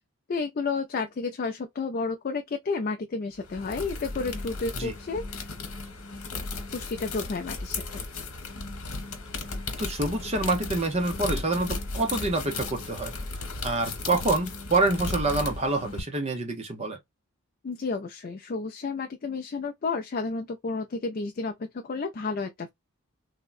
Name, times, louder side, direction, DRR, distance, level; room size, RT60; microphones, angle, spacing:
voice 1, 0.3-5.5 6.7-8.0 17.6-22.7, left 4 dB, 40° left, 0.4 m, -31 dB
sound 1, 3.4-16.0, left 3 dB, 90° left, 1.0 m, -35 dB
voice 2, 9.8-13.1 13.6-17.0, right 2 dB, 30° right, 0.6 m, -27 dB
3.5 x 2.1 x 2.4 m
head